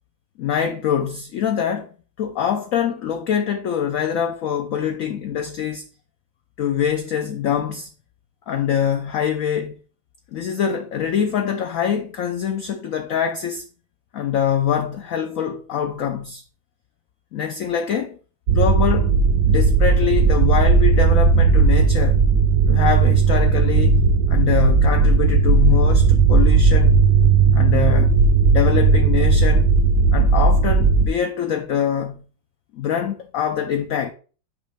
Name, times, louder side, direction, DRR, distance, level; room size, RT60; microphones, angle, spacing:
voice 1, 0.4-1.9 2.2-5.8 6.6-7.9 8.5-9.8 10.3-13.6 14.1-16.4 17.3-18.2 18.5-19.1 19.5-22.2 22.7-24.0 24.3-27.0 27.5-28.1 28.5-29.7 30.1-32.2 32.7-34.1, left 8 dB, 70° left, 0.7 m, -24 dB
sound 1, 18.5-31.1, right 4 dB, 65° right, 1.1 m, -16 dB
6.5 x 5.2 x 3.4 m
omnidirectional pair, 2.1 m